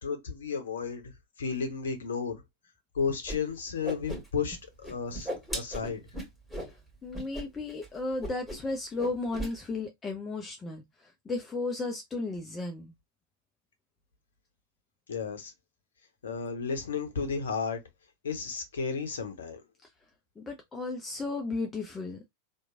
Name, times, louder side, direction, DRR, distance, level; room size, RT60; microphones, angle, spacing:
voice 1, 0.0-1.1 1.4-2.4 2.9-6.0 15.1-15.5 16.2-17.8 18.2-19.6, left 5 dB, 65° left, 0.8 m, -33 dB
Whoosh swoosh swish, 3.3-3.4 3.6-4.6 4.8-6.7 7.1-7.4 7.7-7.9 8.2-8.7 9.0-9.5, right 1 dB, 5° right, 1.6 m, -37 dB
voice 2, 7.0-10.8 11.3-12.9 20.4-22.3, left 3 dB, 20° left, 0.5 m, -34 dB
2.9 x 2.2 x 2.5 m
figure-of-eight pair, 90°, 0 cm